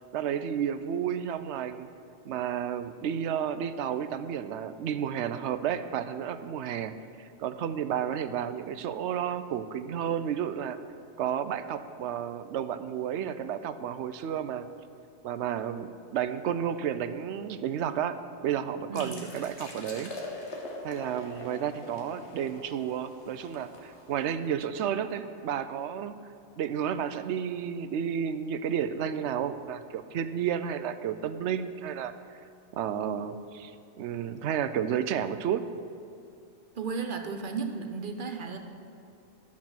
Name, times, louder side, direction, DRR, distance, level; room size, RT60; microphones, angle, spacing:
voice 1, 0.1-1.9 2.2-10.8 11.2-14.7 15.2-18.1 18.4-20.1 20.8-26.2 26.6-32.1 32.7-33.7 34.0-35.6, right 9 dB, 85° right, 11 dB, 0.9 m, -31 dB
sound 1, 18.9-24.5, left 2 dB, 90° left, 1.7 m, -43 dB
voice 2, 36.8-38.6, right 5 dB, 50° right, 5 dB, 0.9 m, -34 dB
12.5 x 7.3 x 6.0 m, 2.5 s
omnidirectional pair, 1.1 m